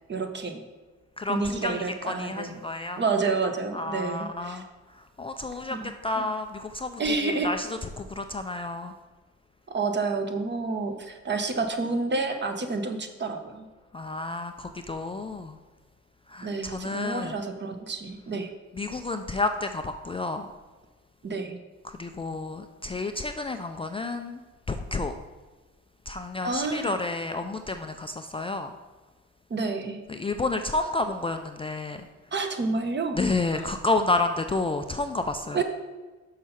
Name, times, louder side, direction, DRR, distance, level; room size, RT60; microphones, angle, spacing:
voice 1, 0.1-0.6 1.3-2.6 3.0-4.6 5.7-5.9 6.2-6.3 7.0-7.5 9.7-13.7 16.4-18.5 21.2-21.6 26.4-26.9 29.5-30.0 32.3-33.2 33.5-33.7 35.5-35.6, right 3 dB, 35° right, 6 dB, 1.0 m, -29 dB
voice 2, 1.2-3.0 3.7-4.6 4.9-5.8 6.0-7.7 8.0-8.9 13.9-15.6 16.3-17.4 18.8-20.5 21.8-25.1 26.1-28.7 30.1-32.1 33.2-35.6, left 2 dB, 20° left, 6 dB, 0.4 m, -30 dB
6.2 x 5.5 x 5.6 m, 1.3 s
cardioid pair, 90°, 30 cm